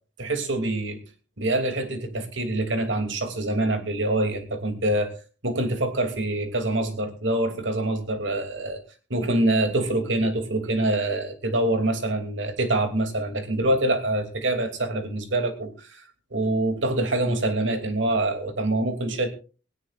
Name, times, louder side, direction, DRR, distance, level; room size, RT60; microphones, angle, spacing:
voice 1, 0.2-1.0 1.4-5.1 5.4-8.8 9.1-19.3, right 1 dB, 85° right, 7 dB, 2.9 m, -25 dB
18.5 x 17.5 x 2.5 m, 0.35 s
head